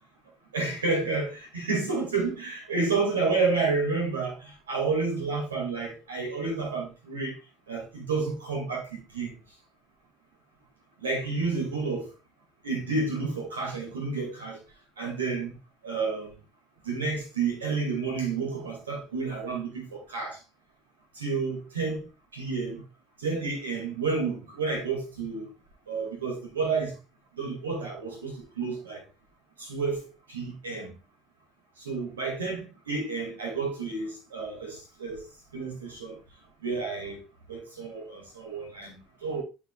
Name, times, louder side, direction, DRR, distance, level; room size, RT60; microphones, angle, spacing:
voice 1, 0.5-7.3 7.7-9.3 11.0-12.1 12.6-14.6 15.0-15.6 15.8-16.3 16.8-20.4 21.2-22.1 22.3-22.8 23.2-25.5 25.9-26.9 27.4-29.0 29.6-30.9 31.8-35.2 35.5-36.2 36.6-37.2 37.5-39.4, right 4 dB, 75° right, 2.2 m, -30 dB
11.5 x 4.8 x 2.4 m
figure-of-eight pair, 60°, 0 cm